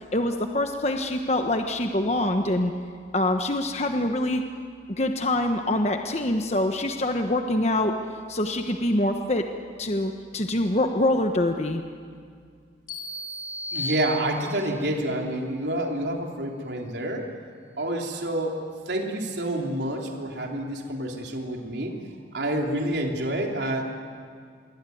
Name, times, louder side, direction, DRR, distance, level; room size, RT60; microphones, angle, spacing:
voice 1, 0.1-2.7 3.1-4.4 5.0-7.9 8.3-9.5 9.8-11.8, left 1 dB, 35° left, 5 dB, 1.2 m, -25 dB
sound 1, 12.9-14.8, equal, 55° left, 4.9 m, -35 dB
voice 2, 13.7-17.3 17.8-21.9 22.3-23.8, right 1 dB, 75° right, 1 dB, 3.4 m, -28 dB
27.0 x 22.0 x 9.4 m, 2.2 s
head